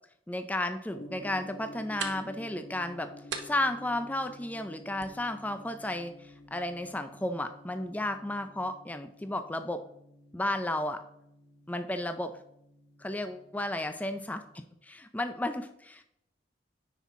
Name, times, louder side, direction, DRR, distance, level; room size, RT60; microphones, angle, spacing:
voice 1, 0.3-3.1 3.4-9.8 10.3-11.0 11.7-12.3 13.0-16.0, left 1 dB, 10° left, 9 dB, 0.4 m, -33 dB
Gong, 0.9-14.6, left 1 dB, 80° left, 1.6 m, -51 dB
sound 1, 1.0-8.0, right 6 dB, 85° right, 0.9 m, -47 dB
9.5 x 5.6 x 3.6 m, 0.78 s
head